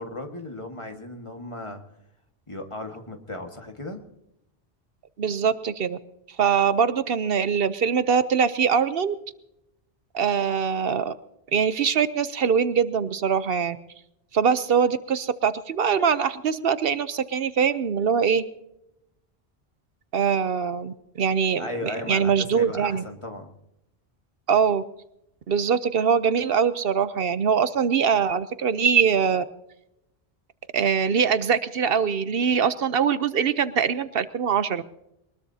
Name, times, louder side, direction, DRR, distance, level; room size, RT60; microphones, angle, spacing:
voice 1, 0.0-1.8 2.5-4.0 21.6-23.5, left 1 dB, 30° left, 4 dB, 1.7 m, -36 dB
voice 2, 5.2-6.0 6.4-9.1 10.1-11.1 11.5-13.8 14.3-18.5 20.1-23.0 24.5-24.8 25.5-29.4 30.7-34.8, right 7 dB, 70° right, 13 dB, 0.9 m, -23 dB
23.0 x 20.5 x 2.8 m, 0.83 s
omnidirectional pair, 1.0 m